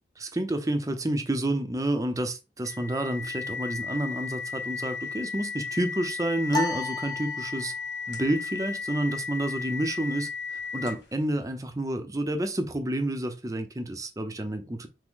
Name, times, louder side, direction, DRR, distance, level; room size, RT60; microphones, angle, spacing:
voice 1, 0.2-7.7 8.1-14.9, right 1 dB, 20° right, 0.6 m, -29 dB
sound 1, 2.6-11.2, left 5 dB, 85° left, 1.6 m, -35 dB
sound 2, 6.5-8.0, left 3 dB, 25° left, 0.5 m, -33 dB
6.0 x 2.1 x 3.7 m
head